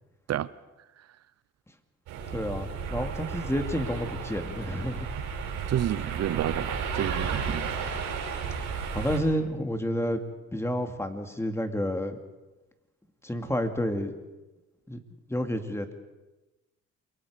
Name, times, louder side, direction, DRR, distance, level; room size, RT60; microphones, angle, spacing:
sound 1, 2.1-9.2, right 6 dB, 90° right, 6.8 m, -33 dB
voice 1, 2.3-5.1 8.9-10.2 10.5-12.2 13.2-14.1 14.9-15.0 15.3-15.9, equal, 10° left, 6 dB, 2.4 m, -30 dB
voice 2, 5.7-7.7, right 12 dB, 55° right, 17 dB, 0.6 m, -30 dB
28.5 x 23.0 x 5.0 m, 1.1 s
cardioid pair, 90°, 30 cm